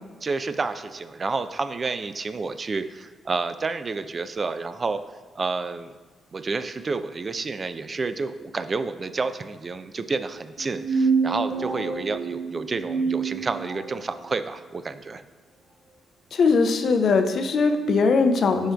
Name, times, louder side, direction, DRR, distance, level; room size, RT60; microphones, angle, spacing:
voice 1, 0.2-5.0 5.4-5.9 6.3-15.2, right 4 dB, 40° right, 11 dB, 0.4 m, -30 dB
sound 1, 10.6-14.0, right 5 dB, 80° right, 1.0 m, -27 dB
voice 2, 16.3-18.7, left 4 dB, 60° left, 7 dB, 0.5 m, -20 dB
11.0 x 4.4 x 2.3 m, 1.3 s
hypercardioid pair, 40°, 0 cm